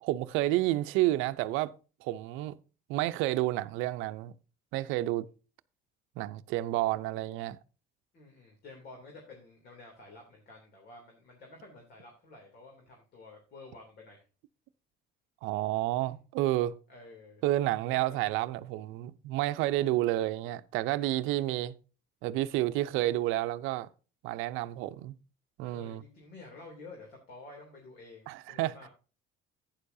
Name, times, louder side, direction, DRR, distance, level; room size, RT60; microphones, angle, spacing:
voice 1, 0.0-1.7 2.0-2.6 2.9-4.3 4.7-5.3 6.2-7.6 15.4-16.8 17.4-21.7 22.2-23.9 24.2-25.2 25.6-26.0 28.3-28.7, right 16 dB, 85° right, 0.7 m, -30 dB
voice 2, 8.1-14.2 16.9-17.4 17.9-18.2 25.6-28.9, left 2 dB, 50° left, 3.0 m, -51 dB
11.5 x 9.3 x 2.7 m
cardioid pair, 140°, 20 cm